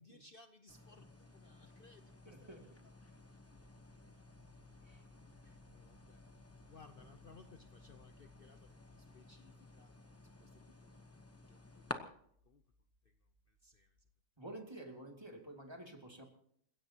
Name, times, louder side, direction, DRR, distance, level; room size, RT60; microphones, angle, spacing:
voice 1, 0.0-3.2 5.4-6.2 6.7-12.1 12.4-12.6 13.0-14.0, left 4 dB, 60° left, 8 dB, 0.5 m, -63 dB
sound 1, 0.7-11.9, left 2 dB, 15° left, 0.6 m, -54 dB
voice 2, 2.3-2.8 4.8-5.0 14.4-16.2, right 1 dB, 15° right, 2 dB, 2.4 m, -50 dB
sound 2, 11.5-14.1, left 2 dB, 35° right, 5.5 m, -70 dB
29.5 x 16.5 x 2.9 m, 0.67 s
omnidirectional pair, 2.0 m